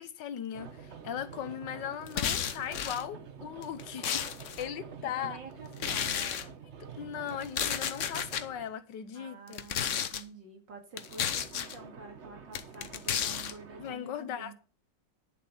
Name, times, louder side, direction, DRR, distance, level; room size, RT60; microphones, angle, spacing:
voice 1, 0.0-4.2 4.6-5.4 7.0-9.6 13.8-14.5, left 9 dB, 75° left, 1.5 m, -38 dB
sound 1, 0.5-8.7 10.9-14.0, right 6 dB, 45° right, 1.2 m, -48 dB
sound 2, 2.1-3.0 3.6-4.7 5.8-6.4 7.4-8.4 9.5-10.2 11.0-11.8 12.5-13.5, left 8 dB, 55° left, 0.9 m, -32 dB
voice 2, 5.0-6.5 9.1-14.5, right 4 dB, 80° right, 3.0 m, -49 dB
11.0 x 7.1 x 5.5 m
omnidirectional pair, 2.0 m